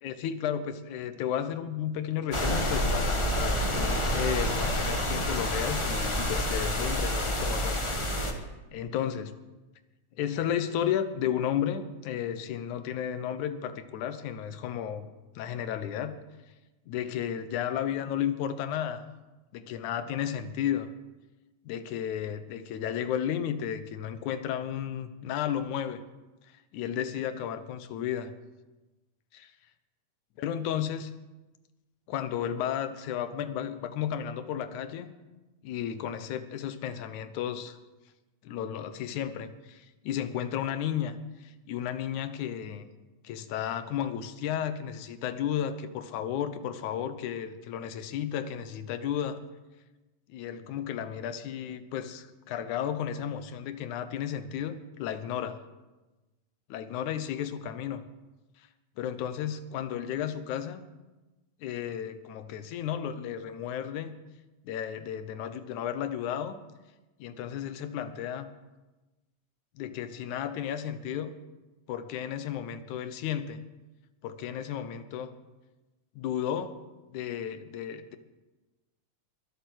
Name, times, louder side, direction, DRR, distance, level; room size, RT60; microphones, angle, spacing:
voice 1, 0.0-8.4 8.7-9.3 10.2-15.1 15.4-16.2 16.9-19.0 19.5-20.9 21.6-26.0 26.5-28.3 29.3-29.5 30.4-31.1 32.1-35.1 35.6-37.8 38.4-42.9 43.2-49.4 50.3-55.6 56.7-58.0 58.6-58.7 59.0-60.8 61.6-64.2 64.6-66.6 67.2-68.5 69.8-71.3 71.9-73.6 74.2-75.3 76.2-76.8 77.1-78.2, left 9 dB, 85° left, 11 dB, 2.3 m, -33 dB
sound 1, 2.3-8.3, equal, 40° left, 0.4 m, -28 dB
21.5 x 8.2 x 6.3 m, 1.1 s
omnidirectional pair, 3.4 m